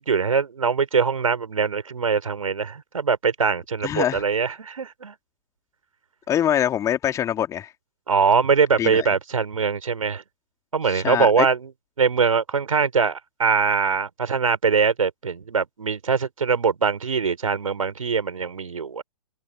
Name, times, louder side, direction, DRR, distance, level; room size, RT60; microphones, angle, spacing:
voice 1, 0.1-5.1 8.1-10.2 10.7-11.7 12.0-19.0, right 5 dB, 65° right, 3.9 m, -22 dB
voice 2, 3.8-4.2 6.3-7.7 8.8-9.1 10.9-11.5, left 10 dB, 15° left, 3.2 m, -24 dB
figure-of-eight pair, 120°, 19 cm